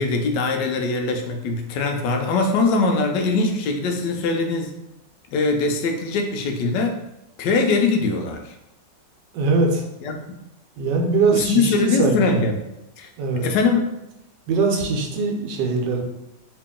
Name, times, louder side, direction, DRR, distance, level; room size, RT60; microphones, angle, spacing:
voice 1, 0.0-4.7 5.3-7.0 7.4-8.5 10.0-10.2 11.3-12.6 13.0-13.1 13.4-13.9, left 3 dB, 80° left, 4 dB, 1.2 m, -22 dB
voice 2, 9.3-9.9 10.8-12.4 13.2-13.5 14.5-16.0, right 4 dB, 85° right, 1 dB, 1.3 m, -21 dB
2.9 x 2.9 x 3.6 m, 0.87 s
omnidirectional pair, 1.9 m